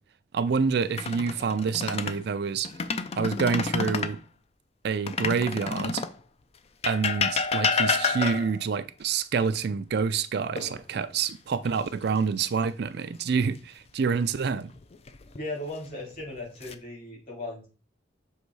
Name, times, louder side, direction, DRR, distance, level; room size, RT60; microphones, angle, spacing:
voice 1, 0.3-2.7 3.2-4.2 4.8-6.0 6.9-14.7, right 5 dB, 60° right, 0.4 m, -27 dB
sound 1, 0.8-2.2 2.6-4.2 5.1-6.2 6.8-8.6 10.6-11.2 11.6-11.9 14.8-15.4 16.1-16.7, left 5 dB, 35° left, 0.4 m, -29 dB
voice 2, 15.3-17.7, left 2 dB, 50° left, 3.0 m, -37 dB
6.6 x 3.0 x 4.7 m
head